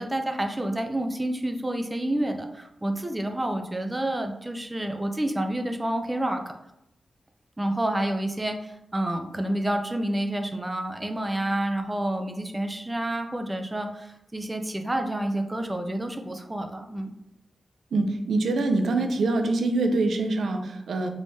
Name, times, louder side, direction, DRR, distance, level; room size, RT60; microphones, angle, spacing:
voice 1, 0.0-6.4 7.6-17.1, right 1 dB, 20° right, 5 dB, 0.4 m, -29 dB
voice 2, 17.9-21.1, right 2 dB, 90° right, 5 dB, 0.4 m, -24 dB
3.4 x 3.2 x 2.6 m, 0.84 s
cardioid pair, 75°, 0 cm